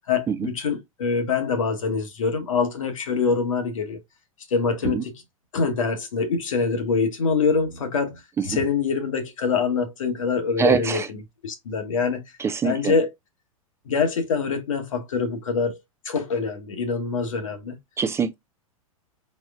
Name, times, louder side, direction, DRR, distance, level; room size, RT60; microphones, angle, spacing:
voice 1, 0.1-4.0 4.5-5.1 5.5-12.2 12.6-13.1 13.8-15.8 16.0-17.8, left 5 dB, 65° left, 1.2 m, -25 dB
voice 2, 10.6-11.1 12.4-12.9 18.0-18.3, right 6 dB, 15° right, 0.4 m, -23 dB
4.8 x 4.2 x 2.4 m
figure-of-eight pair, 100°, 18 cm